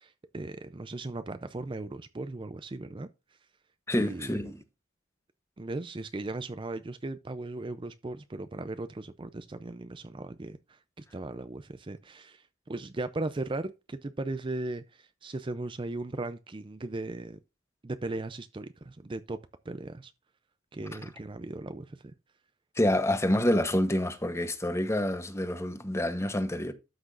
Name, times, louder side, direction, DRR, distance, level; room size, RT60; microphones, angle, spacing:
voice 1, 0.0-3.1 4.0-4.4 5.6-17.4 17.8-19.4 19.7-20.1 20.7-22.1, right 2 dB, 25° right, 0.5 m, -37 dB
voice 2, 3.9-4.6 22.8-26.7, left 1 dB, 15° left, 1.0 m, -27 dB
13.0 x 6.0 x 2.5 m
head